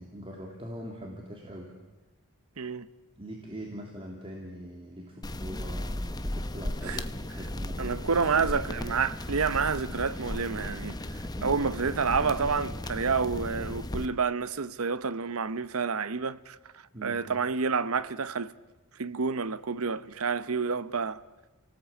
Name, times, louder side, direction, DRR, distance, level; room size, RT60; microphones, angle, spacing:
voice 1, 0.0-1.7 3.2-7.1 7.4-7.9 11.4-11.7 16.9-17.2, equal, 25° right, 2.9 m, -42 dB
sound 1, 5.2-14.1, left 1 dB, 20° left, 0.9 m, -35 dB
voice 2, 7.8-11.0 11.4-16.6 17.0-18.5 19.0-21.2, right 5 dB, 70° right, 0.8 m, -29 dB
29.0 x 18.5 x 8.5 m
head